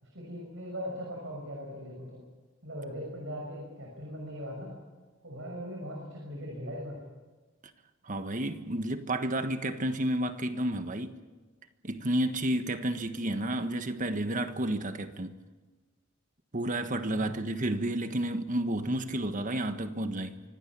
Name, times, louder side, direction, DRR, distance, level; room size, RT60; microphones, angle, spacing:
voice 1, 0.0-2.2 2.6-4.8 5.2-7.0 17.0-17.3, equal, 75° right, 6.2 m, -40 dB
voice 2, 8.0-11.2 11.8-15.4 16.5-20.4, right 1 dB, 40° right, 1.4 m, -31 dB
25.5 x 17.0 x 8.6 m
head